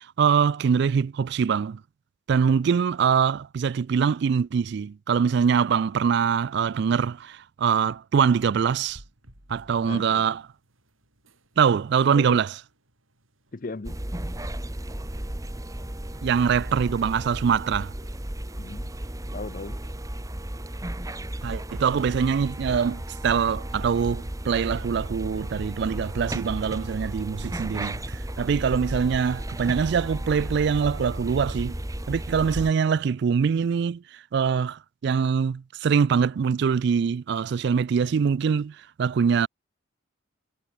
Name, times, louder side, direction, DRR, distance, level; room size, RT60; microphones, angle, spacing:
voice 1, 0.0-1.8 2.3-9.0 9.5-10.4 11.6-12.5 16.2-17.9 21.4-31.8 32.1-34.0 34.3-39.5, right 6 dB, 55° right, 0.3 m, -23 dB
sound 1, 8.4-28.2, right 1 dB, 85° right, 6.9 m, -55 dB
voice 2, 9.9-10.3 12.1-12.4 13.5-14.0 18.6-18.9 19.3-19.8, left 3 dB, 45° left, 0.6 m, -37 dB
sound 2, 13.8-32.7, right 1 dB, 15° right, 1.3 m, -34 dB
head